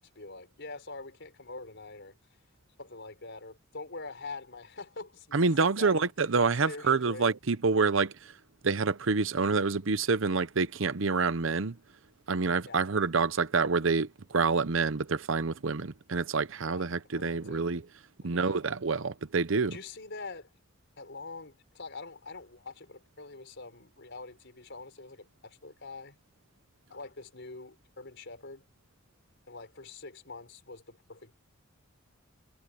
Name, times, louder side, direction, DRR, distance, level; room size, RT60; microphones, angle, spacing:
voice 1, 0.0-2.2 2.8-5.4 5.8-6.0 6.7-7.3 12.7-12.8 16.7-16.8 17.1-17.7 18.2-18.6 19.7-20.5 21.0-26.2 26.9-28.6 29.5-31.3, left 3 dB, 60° left, 5.1 m, -44 dB
voice 2, 5.3-8.3 8.6-11.8 12.3-17.8 18.2-19.8, right 4 dB, 70° right, 0.8 m, -27 dB
head